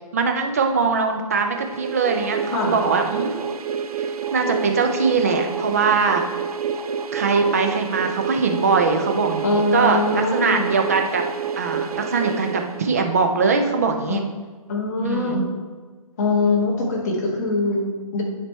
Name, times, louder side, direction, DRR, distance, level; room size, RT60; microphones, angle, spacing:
voice 1, 0.1-3.4 4.3-6.2 7.1-11.2 11.6-14.2 15.0-15.4 17.4-17.5, right 4 dB, 25° right, 4 dB, 0.5 m, -21 dB
sound 1, 1.5-13.3, right 6 dB, 85° right, 0.5 m, -28 dB
voice 2, 2.5-2.8 9.4-10.7 14.1-14.2 14.7-15.5 16.2-18.2, left 3 dB, 30° left, -2 dB, 1.3 m, -22 dB
9.9 x 3.4 x 4.2 m, 1.4 s
hypercardioid pair, 170°, 19 cm